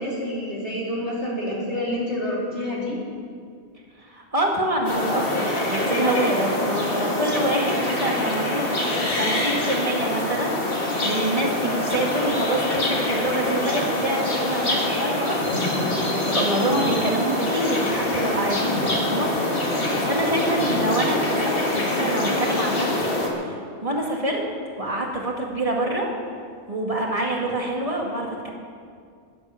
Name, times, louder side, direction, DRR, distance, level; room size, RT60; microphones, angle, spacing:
voice 1, 0.0-3.0, left 1 dB, 85° left, -5 dB, 4.1 m, -28 dB
voice 2, 4.0-19.7 20.0-23.1 23.4-24.4 24.8-26.1 26.7-28.5, right 1 dB, 30° right, -1 dB, 2.2 m, -26 dB
sound 1, 4.8-23.3, left 1 dB, 55° left, 2.2 m, -25 dB
19.0 x 7.9 x 7.2 m, 2.2 s
omnidirectional pair, 1.1 m